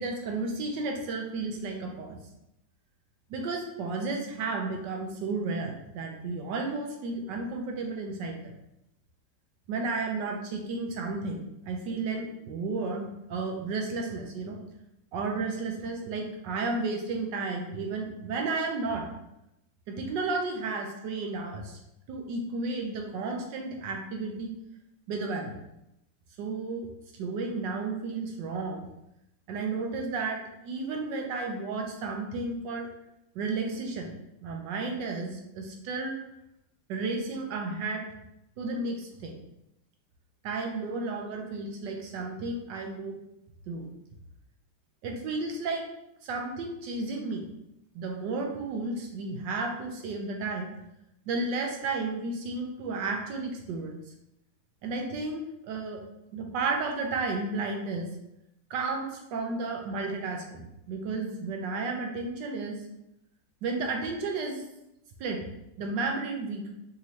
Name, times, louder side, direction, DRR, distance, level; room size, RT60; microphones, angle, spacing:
voice 1, 0.0-2.2 3.3-8.5 9.7-14.6 15.1-19.0 19.9-21.8 22.1-24.5 25.1-25.8 26.4-26.9 27.1-28.9 29.5-32.9 33.3-34.1 34.4-36.1 36.9-38.1 38.6-39.4 40.4-43.2 43.7-43.9 45.0-45.8 46.2-47.4 47.9-50.7 51.3-54.0 54.8-56.0 56.3-58.1 58.7-62.8 63.6-64.6 65.2-65.4 65.8-66.7, right 3 dB, 70° right, 2 dB, 1.3 m, -33 dB
5.5 x 2.7 x 3.1 m, 0.85 s
omnidirectional pair, 2.1 m